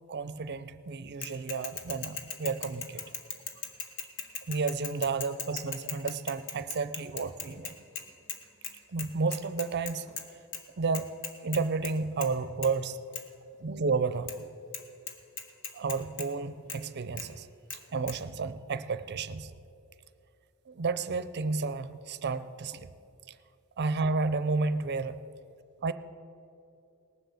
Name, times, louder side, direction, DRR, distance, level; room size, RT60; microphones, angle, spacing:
voice 1, 0.1-3.0 4.5-7.8 8.9-10.1 10.8-11.1 11.4-13.0 13.6-14.5 15.7-17.5 17.7-19.5 20.7-22.9 23.8-25.2 25.8-25.9, right 4 dB, 50° right, 14 dB, 0.6 m, -31 dB
Bicycle / Mechanisms, 1.2-8.4 8.6-8.7 9.0-10.2 10.5-10.6 10.9-11.9 12.2-12.4 12.6-12.7 13.1-13.2 14.3-14.4 14.7-14.8 15.1-16.3 16.7-16.8 17.2-17.3 17.7-17.8 18.1-18.2, left 6 dB, 60° left, 1.3 m, -38 dB
18.5 x 7.6 x 7.1 m, 2.6 s
head